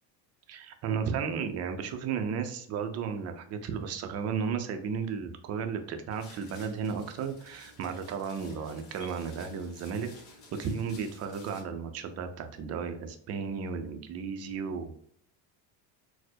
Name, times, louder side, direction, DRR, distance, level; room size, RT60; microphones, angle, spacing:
voice 1, 0.5-10.1 10.6-15.0, right 6 dB, 35° right, 7 dB, 0.4 m, -34 dB
sound 1, 6.1-11.6, left 3 dB, 55° left, 1.4 m, -53 dB
4.3 x 2.1 x 2.7 m, 0.65 s
cardioid pair, 135°, 50 cm